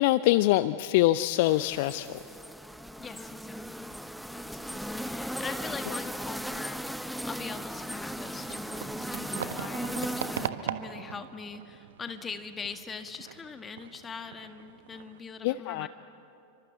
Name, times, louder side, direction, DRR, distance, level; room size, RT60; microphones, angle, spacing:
voice 1, 0.0-2.2 15.4-15.9, left 16 dB, 50° left, 15 dB, 0.5 m, -24 dB
sound 1, 1.4-10.5, equal, ahead, 0.7 m, -37 dB
voice 2, 3.0-3.9 4.3-15.9, left 5 dB, 20° left, 8 dB, 1.8 m, -42 dB
sound 2, 8.4-15.2, right 9 dB, 60° right, 1.3 m, -40 dB
30.0 x 25.0 x 8.1 m, 2.8 s
figure-of-eight pair, 90°, 0 cm